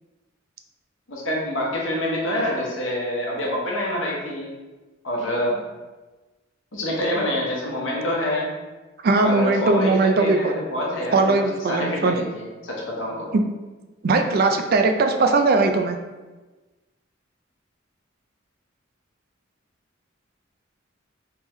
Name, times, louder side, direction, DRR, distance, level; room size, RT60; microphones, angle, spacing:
voice 1, 1.1-4.5 5.0-5.6 6.7-8.5 9.2-13.3, left 1 dB, 75° left, -3 dB, 1.0 m, -26 dB
voice 2, 9.0-10.5 11.1-12.2 13.3-13.4 14.0-16.0, right 3 dB, 50° right, 5 dB, 0.4 m, -19 dB
3.5 x 3.4 x 3.1 m, 1.2 s
head